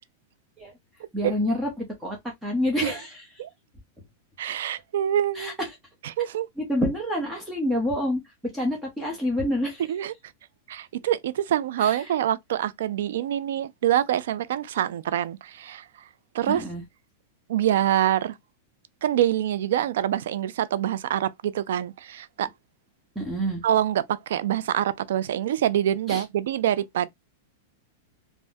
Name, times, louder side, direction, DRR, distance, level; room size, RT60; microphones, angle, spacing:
voice 1, 1.1-2.2 2.4-3.2 5.3-5.7 6.6-8.2 8.5-9.8 11.8-12.0 16.5-16.8 23.1-23.6 26.1-26.2, left 1 dB, 5° right, 0.9 m, -27 dB
voice 2, 4.4-5.6 6.0-6.5 9.9-10.1 10.7-15.9 16.3-16.6 17.5-18.4 19.0-22.5 23.6-27.1, right 11 dB, 75° right, 0.3 m, -25 dB
3.3 x 2.1 x 2.6 m
supercardioid pair, 150°, 0 cm